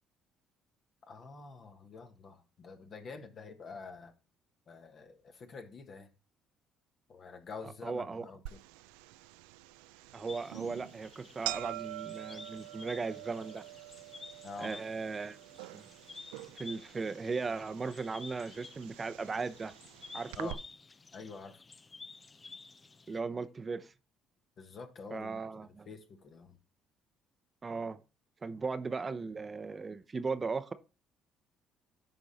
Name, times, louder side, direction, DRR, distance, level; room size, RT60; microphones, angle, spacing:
voice 1, 1.1-4.1 4.7-6.1 7.1-8.6 14.4-14.8 20.3-20.6 21.1-21.6 24.6-25.4 25.8-26.6, left 4 dB, 50° left, 1.4 m, -47 dB
voice 2, 7.8-8.3 10.1-13.6 14.6-15.4 15.7-15.9 16.5-19.7 20.1-20.5 23.1-23.9 25.1-25.9 27.6-28.0 28.4-30.7, right 4 dB, 30° right, 0.7 m, -37 dB
sound 1, 8.5-20.5, right 18 dB, 80° right, 0.3 m, -46 dB
sound 2, 10.3-23.2, left 4 dB, 30° left, 0.5 m, -52 dB
11.0 x 3.7 x 4.1 m
hypercardioid pair, 55°, 0 cm